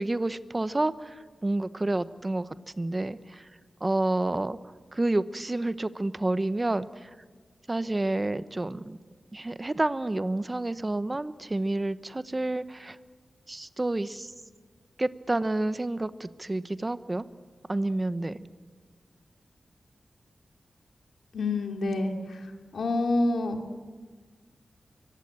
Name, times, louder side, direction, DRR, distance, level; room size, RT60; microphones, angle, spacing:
voice 1, 0.0-2.5 2.8-3.5 3.8-4.6 4.9-7.1 7.7-9.0 9.3-13.0 13.5-14.3 15.0-17.3 17.7-18.4, right 2 dB, 20° right, 14 dB, 0.8 m, -29 dB
voice 2, 21.3-22.4 22.7-23.6, left 2 dB, 90° left, 4 dB, 2.8 m, -27 dB
24.5 x 23.5 x 8.8 m, 1.5 s
wide cardioid pair, 150°, 0 cm